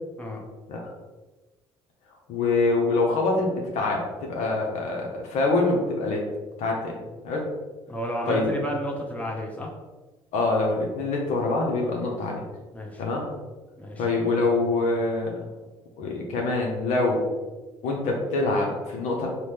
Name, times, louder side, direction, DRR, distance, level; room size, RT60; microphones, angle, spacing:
voice 1, 2.3-6.2 6.6-6.9 7.2-7.5 8.3-8.5 10.3-12.4 13.0-13.2 14.0-15.4 16.0-17.2 17.8-19.3, left 3 dB, 65° left, 0 dB, 0.7 m, -25 dB
voice 2, 7.9-9.7 12.7-13.0 13.8-14.0, equal, 10° left, -1 dB, 0.9 m, -31 dB
4.0 x 2.2 x 3.3 m, 1.2 s
hypercardioid pair, 55°, 13 cm